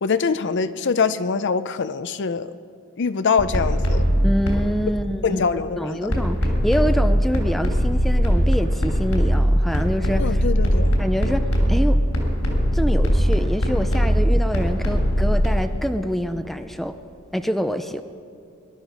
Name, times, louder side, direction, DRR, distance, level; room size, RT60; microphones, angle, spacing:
voice 1, 0.0-2.5 3.0-4.0 5.2-6.2 10.2-11.0, left 5 dB, 55° left, 13 dB, 0.5 m, -23 dB
sound 1, 3.4-4.8 6.1-15.5, equal, 90° left, 3.3 m, -20 dB
voice 2, 4.2-5.4 5.8-10.4 11.0-12.0 12.7-17.0 17.3-18.0, equal, ahead, 8 dB, 0.5 m, -26 dB
21.5 x 12.0 x 5.3 m, 2.5 s
head